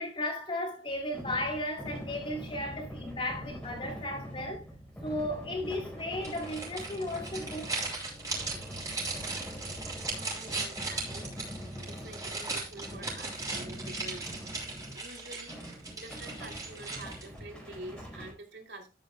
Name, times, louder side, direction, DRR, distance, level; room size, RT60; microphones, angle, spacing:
voice 1, 0.0-4.7 5.0-7.7 10.1-10.4, left 1 dB, 30° left, 2.9 m, -35 dB
sound 1, 0.9-15.1 15.5-18.3, equal, 5° left, 4.3 m, -44 dB
sound 2, 6.2-17.4, right 3 dB, 20° right, 5.7 m, -38 dB
voice 2, 10.4-11.3 11.8-14.4 14.8-18.9, right 2 dB, 75° right, 2.9 m, -47 dB
13.0 x 10.5 x 2.2 m
head